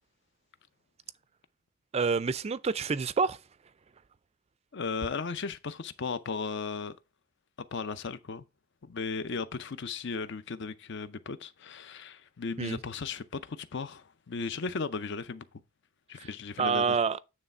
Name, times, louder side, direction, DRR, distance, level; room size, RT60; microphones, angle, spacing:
voice 1, 1.9-3.4 12.6-12.8 16.2-16.3 16.6-17.2, right 5 dB, 30° right, 0.4 m, -27 dB
voice 2, 4.7-7.0 7.7-8.5 8.8-15.4 16.1-17.0, left 4 dB, 55° left, 0.6 m, -36 dB
9.5 x 3.3 x 5.4 m
head